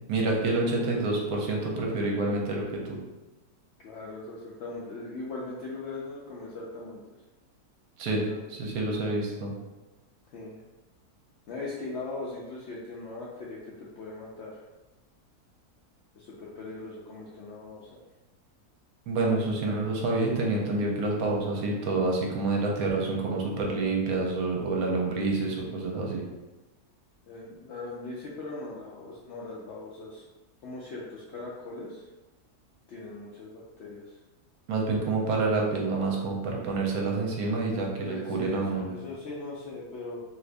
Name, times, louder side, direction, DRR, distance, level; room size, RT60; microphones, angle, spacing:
voice 1, 0.1-3.0 8.0-8.2 8.5-9.5 19.1-26.2 34.7-38.9, right 3 dB, 75° right, -1 dB, 1.1 m, -28 dB
voice 2, 3.8-7.0 8.1-8.9 10.3-10.6 11.5-14.6 16.2-18.0 27.2-30.3 30.6-32.1 32.9-34.2 38.0-40.2, left 3 dB, 75° left, -5 dB, 0.6 m, -40 dB
2.8 x 2.5 x 3.3 m, 1.1 s
omnidirectional pair, 1.6 m